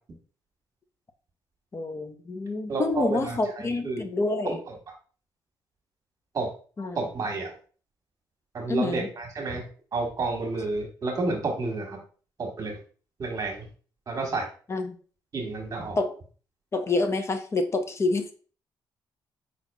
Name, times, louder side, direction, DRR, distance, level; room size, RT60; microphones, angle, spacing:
voice 1, 1.7-4.6 6.8-7.0 8.7-9.1 14.7-14.9 16.0-16.1 16.7-18.3, left 3 dB, 30° left, 0.7 m, -27 dB
voice 2, 2.7-4.1 4.4-4.7 6.3-6.5 6.9-7.5 8.5-9.6 9.9-12.0 12.4-12.8 13.2-13.7 14.1-14.5 15.3-16.0, right 3 dB, 40° right, 1.5 m, -30 dB
4.8 x 4.1 x 2.3 m
cardioid pair, 105°, 9 cm